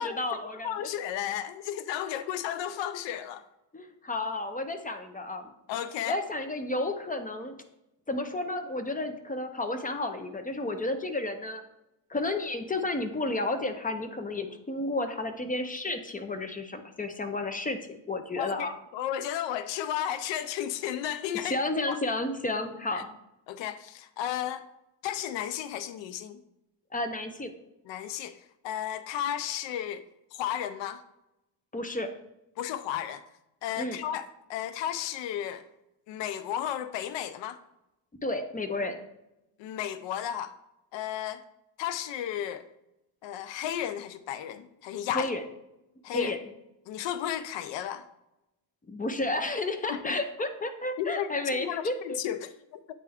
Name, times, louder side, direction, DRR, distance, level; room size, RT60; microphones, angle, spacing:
voice 1, 0.0-0.9 2.0-2.2 3.7-5.5 6.0-7.6 8.1-11.6 12.1-18.7 21.4-23.1 26.9-27.5 31.7-32.1 33.8-34.0 38.2-39.0 45.1-45.4 46.1-46.4 48.9-52.2, left 2 dB, 20° left, 8 dB, 0.6 m, -32 dB
voice 2, 0.6-3.4 5.7-6.2 18.4-21.6 21.9-22.0 22.9-23.0 23.5-24.6 25.0-26.4 27.9-28.4 28.6-30.0 30.4-31.0 32.6-33.2 33.6-35.6 36.1-37.6 39.6-40.5 40.9-41.4 41.8-42.7 43.2-45.3 46.0-46.3 46.9-48.0 49.9-50.2 51.0-52.8, left 10 dB, 75° left, 12 dB, 0.5 m, -33 dB
8.6 x 3.3 x 3.5 m, 0.91 s
cardioid pair, 95°, 45 cm